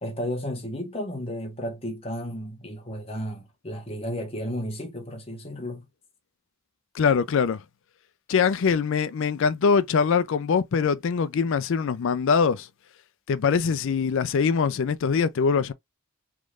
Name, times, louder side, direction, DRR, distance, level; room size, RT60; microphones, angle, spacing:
voice 1, 0.0-5.8 13.6-13.7, equal, 25° left, 1.0 m, -33 dB
voice 2, 6.9-7.6 8.3-12.7 13.3-15.7, left 6 dB, 60° left, 0.4 m, -23 dB
3.6 x 3.1 x 2.4 m
head